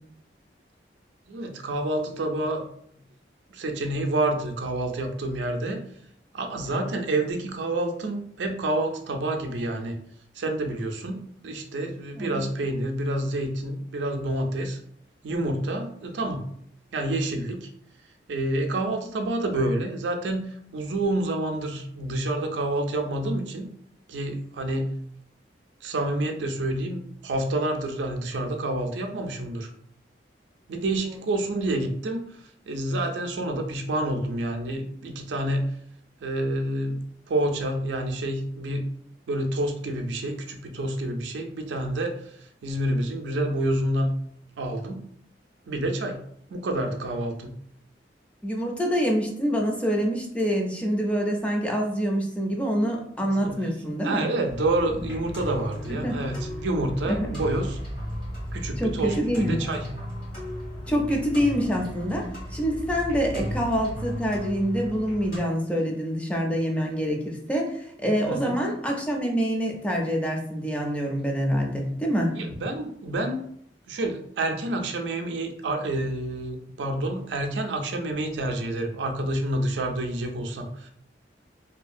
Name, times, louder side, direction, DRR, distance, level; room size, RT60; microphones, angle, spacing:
voice 1, 1.3-2.6 3.5-5.8 6.3-10.0 10.3-14.8 15.2-16.4 16.9-17.7 18.3-23.7 24.1-24.9 25.8-29.7 30.7-35.7 36.2-38.9 39.3-44.1 44.6-45.1 45.7-46.2 46.5-47.5 53.2-53.6 54.0-57.8 58.5-59.8 68.3-68.6 72.3-73.4 73.9-80.9, right 1 dB, 80° right, 4 dB, 0.4 m, -28 dB
voice 2, 48.4-54.3 55.9-56.2 57.1-57.4 58.8-59.6 60.9-72.3, equal, 5° left, 0 dB, 0.4 m, -26 dB
sound 1, 54.5-65.4, equal, 60° left, 1.1 m, -35 dB
2.7 x 2.3 x 2.5 m, 0.66 s
head